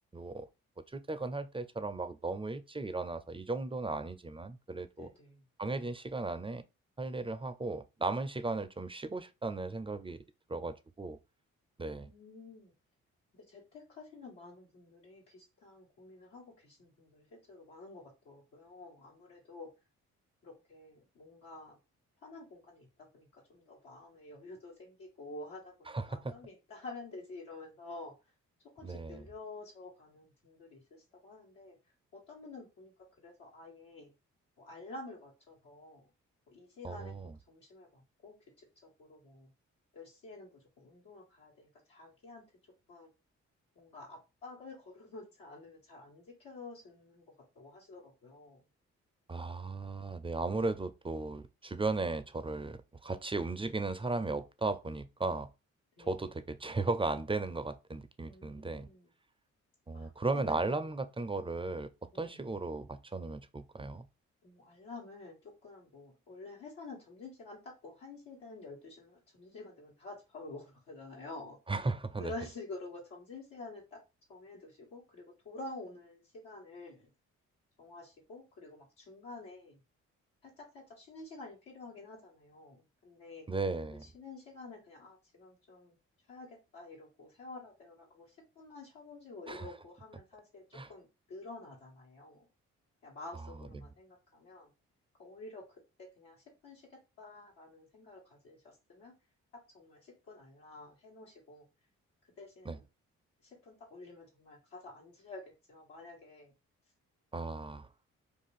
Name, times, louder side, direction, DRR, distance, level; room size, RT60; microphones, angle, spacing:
voice 1, 0.1-0.5 0.9-5.1 5.6-6.6 7.0-10.2 10.5-11.2 11.8-12.1 25.9-26.3 28.8-29.3 36.8-37.3 49.3-55.5 56.0-58.9 59.9-64.1 71.7-72.3 83.5-84.1 89.5-89.7 90.7-90.9 93.7-93.9 102.6-102.8 107.3-107.9, right 3 dB, 15° right, 0.4 m, -36 dB
voice 2, 5.0-5.4 11.8-12.7 13.3-19.7 20.4-21.8 22.2-22.9 23.1-28.1 28.7-31.8 32.1-32.9 33.2-34.1 34.6-36.1 36.5-37.1 37.5-39.5 39.9-42.4 42.9-43.1 43.7-47.2 47.5-48.6 56.0-56.2 58.3-59.1 59.9-60.8 62.1-62.5 64.4-71.6 72.2-74.0 74.3-77.1 77.8-79.8 80.4-83.5 84.0-85.9 86.3-92.4 93.0-94.7 95.2-95.6 96.0-99.1 99.7-101.7 102.4-102.8 103.4-105.4 105.7-106.5, left 2 dB, 85° left, 1.3 m, -49 dB
2.5 x 2.4 x 4.0 m
hypercardioid pair, 45°, 34 cm